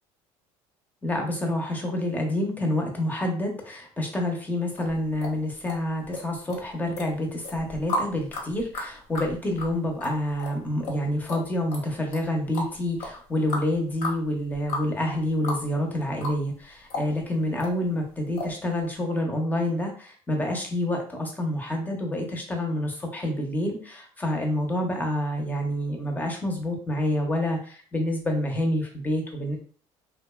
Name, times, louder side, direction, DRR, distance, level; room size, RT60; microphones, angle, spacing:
voice 1, 1.0-29.6, left 1 dB, 15° left, 2 dB, 0.7 m, -28 dB
sound 1, 4.8-6.2 6.5-7.1 7.4-15.7 15.9-16.6 16.9-17.7 18.4-18.6 18.9-19.0, left 2 dB, 75° left, 0.9 m, -34 dB
2.5 x 2.2 x 2.2 m, 0.43 s
supercardioid pair, 90°, 12 cm